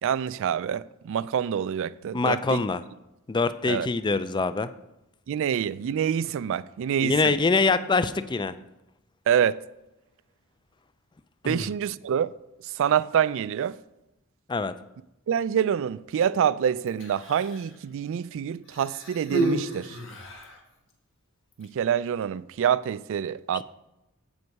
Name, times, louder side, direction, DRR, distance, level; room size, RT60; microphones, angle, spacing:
voice 1, 0.0-2.6 3.6-3.9 5.3-7.3 9.3-9.6 11.4-12.3 12.6-13.8 15.3-20.0 21.6-23.6, right 8 dB, 65° right, 0.3 m, -26 dB
voice 2, 2.1-2.8 3.3-4.7 7.0-8.5 11.4-11.6 14.5-14.7, left 4 dB, 20° left, 0.4 m, -24 dB
Human voice, 16.9-17.8 18.7-20.6 21.5-21.7, right 2 dB, 65° left, 1.7 m, -31 dB
8.1 x 7.9 x 4.7 m
head